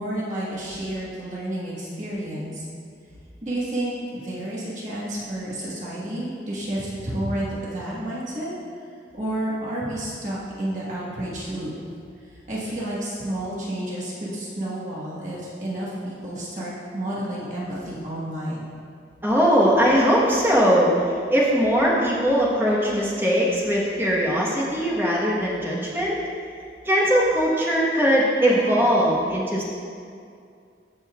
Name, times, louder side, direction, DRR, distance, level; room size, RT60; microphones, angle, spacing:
voice 1, 0.0-2.6 3.4-8.5 9.1-11.7 12.3-18.7, right 1 dB, 45° right, -7 dB, 1.4 m, -30 dB
voice 2, 19.2-21.0 21.3-26.2 26.8-29.6, equal, 15° right, -5 dB, 1.2 m, -20 dB
14.5 x 5.5 x 2.4 m, 2.4 s
head